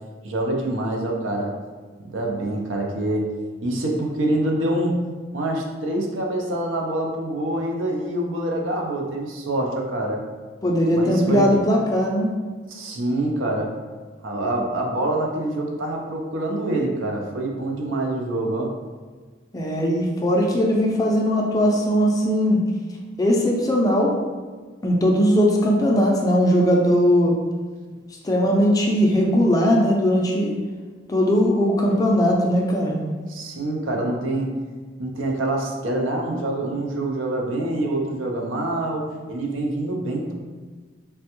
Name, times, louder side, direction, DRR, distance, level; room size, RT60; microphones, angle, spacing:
voice 1, 0.2-1.5 2.0-3.3 3.6-5.0 5.3-10.2 10.9-11.5 12.7-13.7 14.2-18.7 33.3-34.5 35.0-40.3, right 1 dB, 85° right, 1 dB, 0.5 m, -26 dB
voice 2, 10.6-12.3 19.5-22.6 23.2-24.1 24.8-27.4 28.2-30.6 31.1-33.0, equal, 20° left, 0 dB, 0.3 m, -19 dB
3.3 x 2.2 x 2.9 m, 1.4 s
head